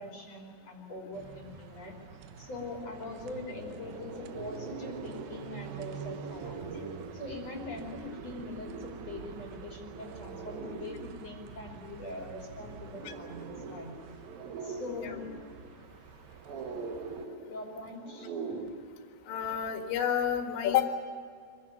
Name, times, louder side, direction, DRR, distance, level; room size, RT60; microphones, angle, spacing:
voice 1, 0.0-2.0 2.4-6.8 7.1-13.9 14.6-15.3 17.5-18.3, left 2 dB, 35° left, 0 dB, 3.8 m, -42 dB
sound 1, 1.1-17.3, right 8 dB, 80° right, 2.1 m, -48 dB
sound 2, 2.1-2.2 2.5-18.7, right 4 dB, 60° right, 3.2 m, -44 dB
voice 2, 19.3-20.9, left 10 dB, 70° left, 5 dB, 4.0 m, -29 dB
25.0 x 16.0 x 9.5 m, 2.3 s
omnidirectional pair, 5.4 m